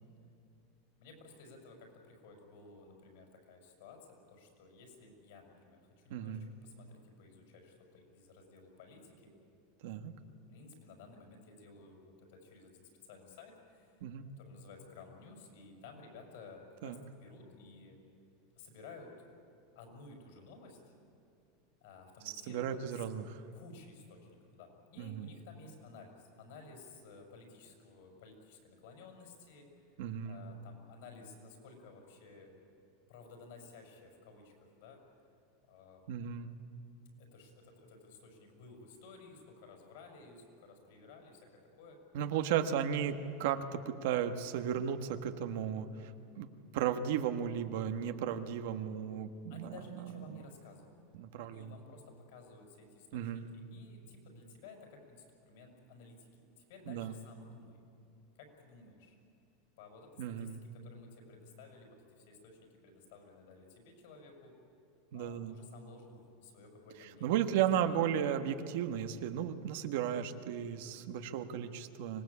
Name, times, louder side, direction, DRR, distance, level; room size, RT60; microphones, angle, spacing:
voice 1, 1.0-9.3 10.5-14.1 14.4-18.0 18.6-19.1 19.7-20.8 21.8-23.0 23.5-30.0 30.2-32.5 33.1-35.0 35.7-36.1 37.2-41.5 41.7-42.0 42.5-42.7 49.5-51.0 51.4-56.3 56.6-57.8 58.3-59.2 59.8-64.5 65.1-67.5 67.8-67.9, left 4 dB, 65° left, 3 dB, 6.2 m, -55 dB
voice 2, 6.1-6.5 9.8-10.1 14.0-14.2 16.8-17.0 22.5-23.4 25.0-25.3 30.0-30.4 36.1-36.5 42.1-46.1 46.4-46.5 46.7-49.8 50.3-50.4 51.2-51.7 53.1-53.5 56.9-57.1 60.2-60.6 65.1-65.6 67.2-72.2, right 9 dB, 65° right, 8 dB, 1.4 m, -35 dB
25.0 x 19.0 x 8.5 m, 2.7 s
supercardioid pair, 155°, 0 cm